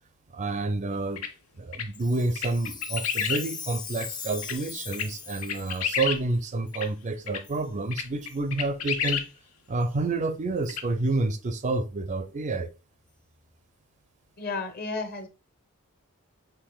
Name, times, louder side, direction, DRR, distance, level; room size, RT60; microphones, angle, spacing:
voice 1, 0.3-1.2 1.6-9.2 9.7-12.7, right 2 dB, 35° right, 0.4 m, -29 dB
sound 1, 1.2-1.3 1.7-1.9 2.4-3.4 4.0-4.1 4.4-4.5 4.9-5.1 5.4-6.2 6.7-6.9 7.3-7.4 7.9-9.3 10.7-10.8, left 8 dB, 85° left, 0.7 m, -29 dB
Chime, 1.9-6.0 6.7-6.8 7.4-7.6 8.2-8.4 9.1-9.2 9.8-9.9 10.6-10.7, left 6 dB, 20° left, 0.5 m, -40 dB
voice 2, 14.4-15.3, left 3 dB, 45° left, 0.9 m, -32 dB
6.7 x 3.2 x 2.2 m
head